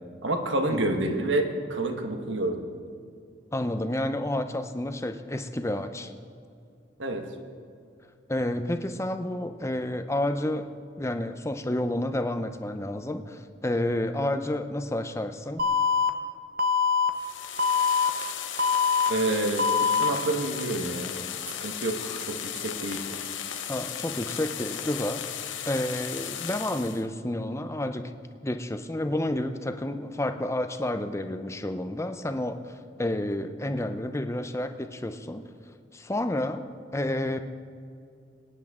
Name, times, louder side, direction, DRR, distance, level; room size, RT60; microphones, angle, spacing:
voice 1, 0.2-1.4 1.7-2.7 7.0-7.3 19.1-21.1 21.6-23.0, right 2 dB, 75° right, 5 dB, 1.4 m, -28 dB
voice 2, 3.5-6.1 8.3-10.6 11.0-15.6 23.7-25.2 25.6-28.1 28.4-35.5 35.9-36.6 36.9-37.4, left 1 dB, 15° left, 8 dB, 0.6 m, -30 dB
Alarm, 15.6-16.1 16.6-17.1 17.6-18.1 18.6-19.1 19.6-20.1, left 6 dB, 50° right, 0.9 m, -23 dB
sound 1, 17.1-27.0, left 9 dB, 75° left, 0.9 m, -36 dB
22.0 x 10.0 x 3.7 m, 2.4 s
head